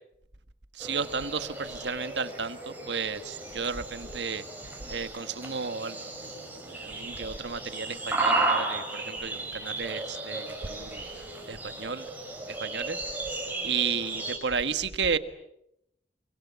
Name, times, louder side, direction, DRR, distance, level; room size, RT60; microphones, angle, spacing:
voice 1, 0.7-4.4 4.9-6.0 6.7-12.1 12.5-13.0 13.6-15.2, right 5 dB, 85° right, 11 dB, 1.6 m, -33 dB
sound 1, 0.8-14.4, right 3 dB, 10° right, 6.3 m, -34 dB
29.5 x 24.5 x 8.2 m, 0.82 s
head